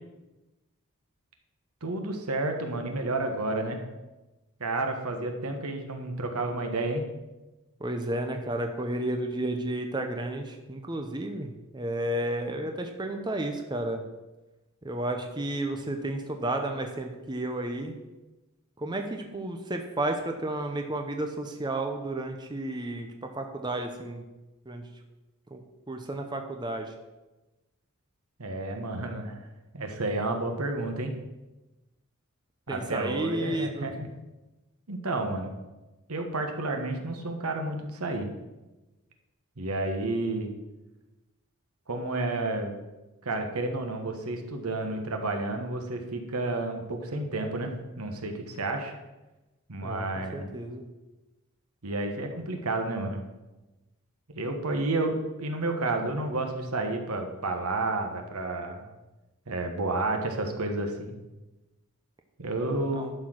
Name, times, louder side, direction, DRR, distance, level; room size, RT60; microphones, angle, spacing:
voice 1, 1.8-3.8 4.6-7.0 28.4-29.4 29.7-31.1 32.7-34.1 34.9-35.5 36.1-38.3 39.6-40.5 41.9-42.8 43.2-48.9 49.7-50.5 51.8-53.2 54.3-58.9 59.5-61.1 62.4-63.1, right 2 dB, 85° right, 4 dB, 1.3 m, -31 dB
voice 2, 7.8-14.0 14.8-17.9 18.8-24.2 24.7-24.9 25.5-25.6 25.9-26.9 32.7-33.9 49.8-50.1 50.3-50.8 62.9-63.1, right 1 dB, 20° right, 4 dB, 0.7 m, -32 dB
11.5 x 4.5 x 6.2 m, 1.1 s
head